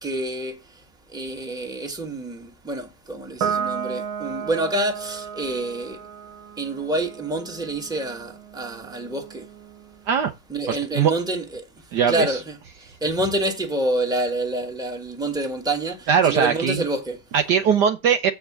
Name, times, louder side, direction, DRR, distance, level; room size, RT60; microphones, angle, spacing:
voice 1, 0.0-0.8 1.1-6.0 6.6-9.5 10.5-11.7 12.1-17.2, right 1 dB, ahead, 1.6 m, -27 dB
Piano, 3.4-10.1, right 7 dB, 85° right, 2.3 m, -33 dB
voice 2, 10.7-11.1 11.9-12.4 16.1-16.8 17.3-18.3, right 7 dB, 65° right, 1.3 m, -20 dB
7.9 x 4.8 x 7.4 m
omnidirectional pair, 2.2 m